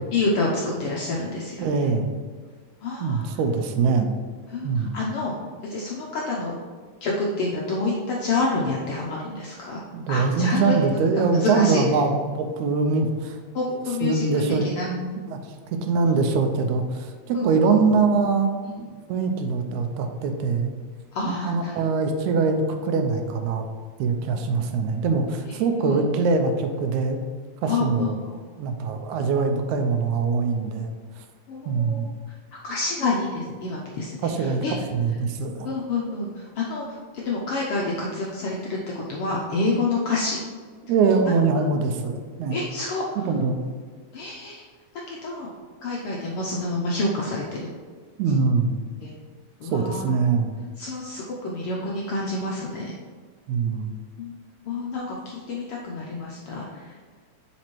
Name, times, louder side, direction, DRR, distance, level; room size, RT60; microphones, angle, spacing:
voice 1, 0.1-1.9 2.8-3.3 4.5-5.3 5.7-6.5 7.0-9.8 10.1-10.7 11.3-11.8 13.5-14.2 14.8-14.9 17.3-17.8 18.6-18.7 21.1-21.7 25.5-25.6 25.8-26.0 27.7-28.1 31.5-32.1 32.6-34.7 35.6-36.8 37.1-40.4 42.5-43.0 44.1-44.7 45.1-45.5 45.8-47.7 49.0-49.1 49.6-50.1 50.8-52.9 54.2-54.3 54.7-56.9, left 3 dB, 75° left, -3 dB, 1.3 m, -28 dB
voice 2, 1.6-2.1 3.0-4.2 4.6-5.0 9.9-13.7 14.0-15.0 15.3-15.4 15.7-20.7 21.3-23.7 24.0-27.2 27.6-28.1 28.6-30.9 31.7-32.1 34.2-34.6 34.9-35.7 40.8-42.6 43.3-43.6 48.2-48.8 49.7-50.5 53.5-53.9, right 4 dB, 90° right, 6 dB, 2.0 m, -23 dB
7.2 x 5.1 x 3.1 m, 1.5 s
omnidirectional pair, 3.4 m